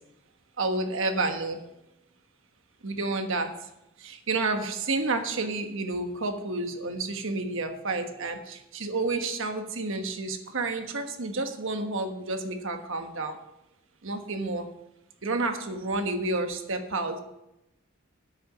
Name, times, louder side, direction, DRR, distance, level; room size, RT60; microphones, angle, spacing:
voice 1, 0.6-1.6 2.8-3.5 4.0-13.4 14.0-14.7 15.2-17.2, right 3 dB, 65° right, 6 dB, 1.3 m, -30 dB
9.8 x 6.8 x 6.4 m, 0.87 s
head